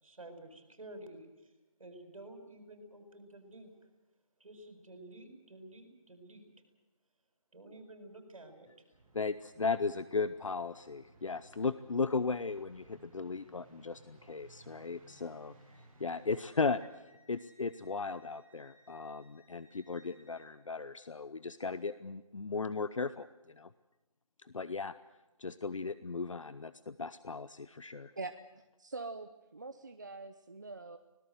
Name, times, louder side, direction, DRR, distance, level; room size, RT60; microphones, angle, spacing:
voice 1, 0.0-1.5 1.8-3.7 4.4-6.4 7.5-8.7, right 1 dB, 65° right, 5 dB, 7.5 m, -51 dB
sound 1, 8.9-16.8, right 2 dB, 15° right, 5.5 m, -60 dB
voice 2, 9.1-15.5 16.0-16.8 17.3-23.7 24.4-24.9 25.4-28.1, left 4 dB, 60° left, 15 dB, 0.8 m, -36 dB
Wind instrument woodwind instrument, 14.7-20.5, equal, 5° left, 7.3 m, -68 dB
voice 3, 28.2-31.0, right 3 dB, 35° right, 8 dB, 0.8 m, -44 dB
25.5 x 18.5 x 7.9 m, 1.1 s
figure-of-eight pair, 175°, 18 cm